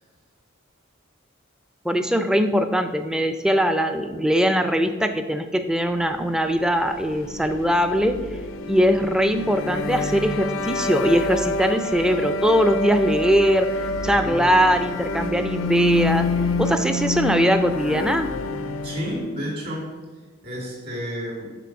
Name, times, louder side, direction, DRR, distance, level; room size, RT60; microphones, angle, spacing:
voice 1, 1.8-8.2 8.7-16.3 16.6-18.3, equal, 5° right, 8 dB, 0.4 m, -21 dB
sound 1, 6.4-19.4, left 2 dB, 80° left, 0.5 m, -28 dB
voice 2, 14.1-14.5 18.8-20.0 20.4-21.5, equal, 50° right, -2 dB, 2.1 m, -31 dB
6.0 x 3.9 x 5.8 m, 1.4 s
head